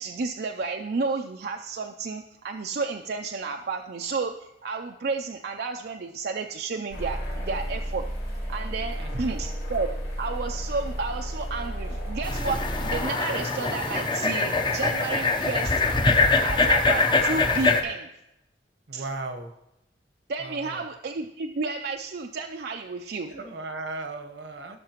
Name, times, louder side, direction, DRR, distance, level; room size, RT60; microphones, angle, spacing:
voice 1, 0.0-8.1 8.5-9.9 10.2-15.7 16.4-18.1 18.9-19.1 20.3-23.3, right 4 dB, 60° right, 3 dB, 0.4 m, -31 dB
sound 1, 6.9-13.0, equal, 80° left, 4.2 m, -32 dB
voice 2, 9.0-9.3 18.9-19.5 20.4-20.8 23.3-24.8, right 2 dB, 80° right, 5 dB, 1.0 m, -36 dB
sound 2, 12.2-17.8, left 3 dB, 25° left, 0.7 m, -23 dB
16.5 x 6.4 x 3.0 m, 0.90 s
head